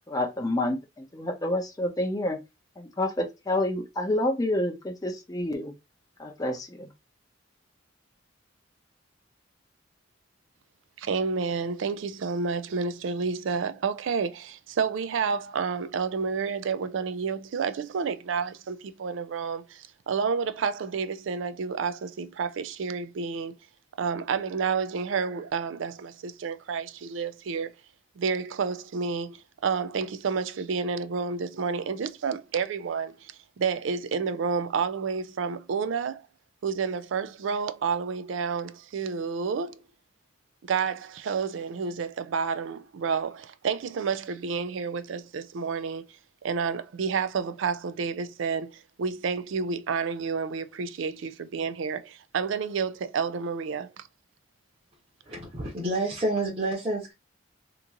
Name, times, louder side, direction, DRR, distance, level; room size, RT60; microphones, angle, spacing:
voice 1, 0.1-2.4 2.8-5.7 6.2-6.9, left 1 dB, 20° left, 0.6 m, -28 dB
voice 2, 11.0-23.5 24.0-27.7 28.2-36.2 36.6-39.8 40.7-46.1 46.4-54.0, right 5 dB, 70° right, 0.4 m, -30 dB
voice 3, 55.3-57.1, right 2 dB, 30° right, 1.0 m, -29 dB
3.0 x 2.6 x 3.6 m
head